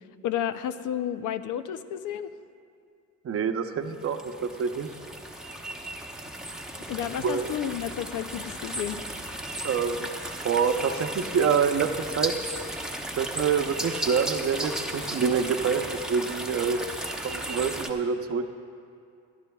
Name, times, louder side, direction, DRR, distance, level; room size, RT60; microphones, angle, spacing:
voice 1, 0.2-2.3 6.9-9.0, left 10 dB, 80° left, 11 dB, 0.6 m, -31 dB
voice 2, 3.2-4.9 7.2-7.5 9.6-10.1 10.4-12.5 13.2-16.8 17.2-18.5, right 6 dB, 50° right, 8 dB, 0.7 m, -26 dB
sound 1, 4.0-17.9, right 1 dB, ahead, 1.0 m, -35 dB
23.0 x 12.0 x 2.3 m, 2.4 s
cardioid pair, 90°, 30 cm